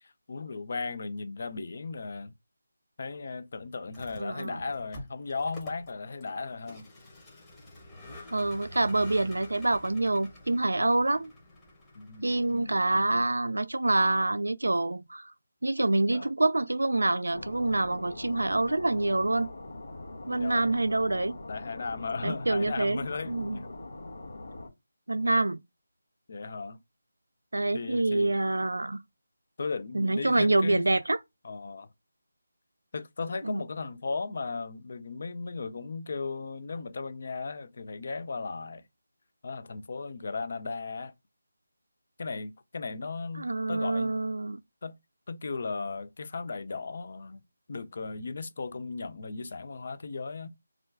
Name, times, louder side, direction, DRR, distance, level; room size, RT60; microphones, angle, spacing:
voice 1, 0.0-2.3 3.0-6.9 12.0-13.2 16.1-16.3 20.3-20.7 21.5-23.7 26.3-26.8 27.7-28.3 29.6-30.9 31.4-31.9 32.9-38.9 39.4-41.1 42.2-44.2 44.8-45.0 45.3-47.4 47.7-50.5, left 4 dB, 50° left, 0.4 m, -36 dB
Vehicle, 3.8-13.2, left 1 dB, 10° left, 0.8 m, -48 dB
voice 2, 4.2-4.6 8.3-11.3 12.2-15.3 15.6-19.5 20.3-21.4 22.2-23.0 23.3-23.6 25.1-25.6 27.5-29.0 29.9-31.2 33.4-33.6 43.4-44.6, right 2 dB, 90° right, 0.3 m, -26 dB
sound 1, 17.3-24.7, left 2 dB, 85° left, 0.9 m, -43 dB
2.4 x 2.2 x 3.3 m
figure-of-eight pair, 165°, 0 cm